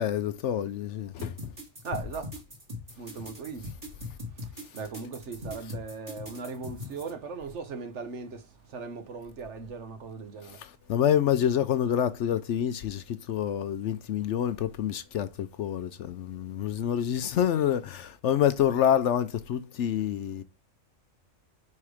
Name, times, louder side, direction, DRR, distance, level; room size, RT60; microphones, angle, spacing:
voice 1, 0.0-1.5 10.4-20.4, left 10 dB, 70° left, 0.8 m, -27 dB
sound 1, 1.2-7.1, left 2 dB, 30° right, 1.9 m, -40 dB
voice 2, 1.8-2.3 3.0-3.7 4.4-10.6, right 4 dB, 60° right, 1.2 m, -38 dB
4.8 x 4.3 x 4.8 m
omnidirectional pair, 1.4 m